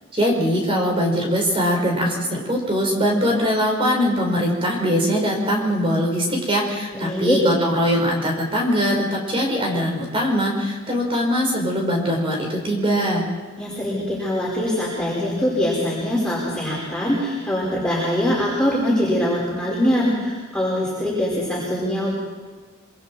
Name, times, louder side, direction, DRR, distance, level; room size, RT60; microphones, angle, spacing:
voice 1, 0.1-13.2, equal, 25° right, 0 dB, 5.2 m, -21 dB
voice 2, 6.9-7.4 13.6-22.1, equal, 5° left, -7 dB, 5.9 m, -23 dB
26.0 x 25.0 x 4.7 m, 1.5 s
head